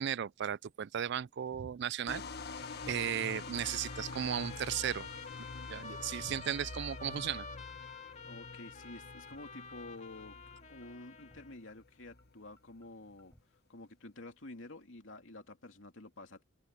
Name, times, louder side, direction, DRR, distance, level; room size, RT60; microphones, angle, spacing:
voice 1, 0.0-2.2 2.9-5.1 5.7-7.5, right 9 dB, 60° right, 0.4 m, -35 dB
sound 1, 2.1-12.9, left 3 dB, 55° left, 1.6 m, -47 dB
Trumpet, 2.4-11.6, left 5 dB, 35° left, 2.5 m, -50 dB
sound 2, 5.2-5.4 5.7-5.8 6.2-6.3 6.6-6.9 7.2-7.4 7.7-7.8 8.2-8.3 8.6-8.9 9.2-9.4 9.7-9.8 10.2-10.3 10.6-10.9 11.2-11.4 11.7-11.8 12.2-12.3 12.6-12.9 13.2-13.4, equal, 10° left, 5.2 m, -65 dB
voice 2, 8.2-10.4 10.7-16.4, left 2 dB, 75° left, 2.7 m, -50 dB
open air
head